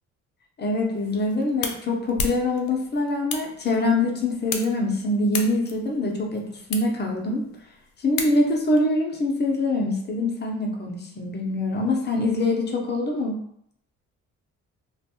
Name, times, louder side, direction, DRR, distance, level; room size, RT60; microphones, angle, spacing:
voice 1, 0.6-7.5 8.0-13.4, left 2 dB, 35° left, 1 dB, 0.6 m, -24 dB
sound 1, 1.0-8.8, left 5 dB, 80° left, 0.5 m, -36 dB
2.5 x 2.2 x 2.8 m, 0.71 s
cardioid pair, 90°, 30 cm